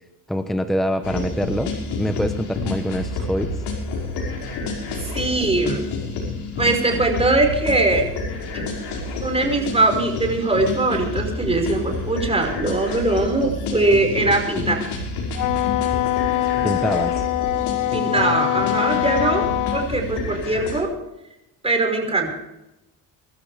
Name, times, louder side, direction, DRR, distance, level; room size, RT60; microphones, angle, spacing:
voice 1, 0.3-1.7 2.0-3.5 16.6-17.1, equal, ahead, 7 dB, 1.1 m, -24 dB
sound 1, 1.0-20.8, left 3 dB, 80° left, 5.6 m, -29 dB
voice 2, 5.0-5.9 6.6-8.1 8.5-8.7 9.2-14.8 17.9-19.5 19.7-20.9 21.6-22.4, right 2 dB, 15° right, 3 dB, 5.4 m, -21 dB
Wind instrument woodwind instrument, 15.3-19.9, left 16 dB, 55° left, 0.5 m, -23 dB
24.0 x 13.0 x 3.5 m, 0.91 s
cardioid pair, 105°, 39 cm